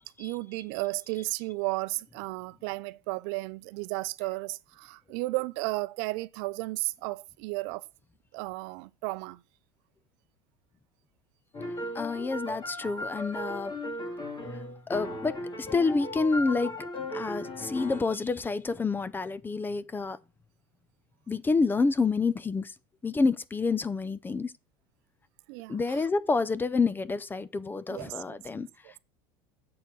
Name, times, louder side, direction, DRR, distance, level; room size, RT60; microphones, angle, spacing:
voice 1, 0.2-7.8 8.3-9.4 14.0-14.4 25.5-26.1 27.9-28.4 28.8-29.0, right 22 dB, 65° right, 0.5 m, -34 dB
sound 1, 11.5-18.0, left 1 dB, 35° left, 2.5 m, -37 dB
voice 2, 11.9-13.7 14.2-14.6 14.9-16.9 17.1-20.2 21.3-22.7 23.0-24.5 25.7-28.7, left 4 dB, 15° left, 0.5 m, -28 dB
7.5 x 4.4 x 6.8 m
supercardioid pair, 105°, 13 cm